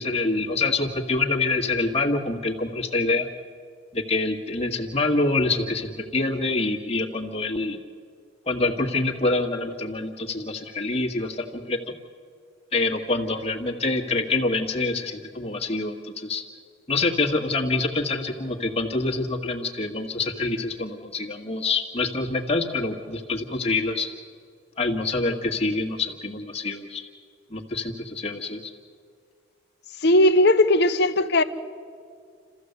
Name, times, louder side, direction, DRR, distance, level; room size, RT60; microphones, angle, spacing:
voice 1, 0.0-3.3 3.9-7.8 8.5-12.0 12.7-16.4 16.9-24.1 24.8-27.0 27.5-28.7, left 3 dB, 30° left, 1.8 m, -26 dB
voice 2, 30.0-31.4, left 1 dB, 55° left, 1.0 m, -18 dB
28.5 x 14.5 x 8.2 m
head